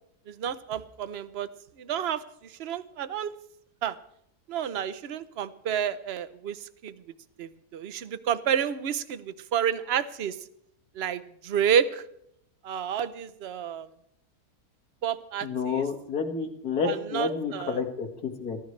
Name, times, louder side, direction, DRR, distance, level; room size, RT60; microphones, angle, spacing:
voice 1, 0.3-1.5 1.8-3.3 3.8-4.0 4.5-6.9 7.4-10.4 10.9-12.0 12.6-13.9 15.0-15.9 16.8-17.8, right 8 dB, 50° right, 13 dB, 0.9 m, -30 dB
voice 2, 15.4-18.6, left 5 dB, 70° left, 3 dB, 2.4 m, -30 dB
23.5 x 15.0 x 3.3 m, 0.73 s
omnidirectional pair, 1.7 m